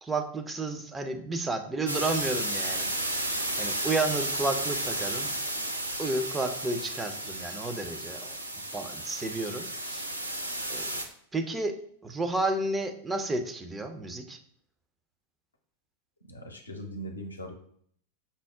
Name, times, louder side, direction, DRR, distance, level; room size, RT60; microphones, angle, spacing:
voice 1, 0.0-3.2 3.6-5.3 6.0-8.4 8.7-10.0 10.7-10.8 11.3-11.7 12.0-14.4, right 2 dB, 10° right, 6 dB, 0.4 m, -31 dB
sound 1, 1.9-11.0, right 1 dB, 85° right, 0.4 m, -33 dB
voice 2, 16.2-17.6, equal, 80° left, 4 dB, 0.6 m, -40 dB
5.4 x 2.0 x 3.5 m, 0.64 s
figure-of-eight pair, 90°, 0 cm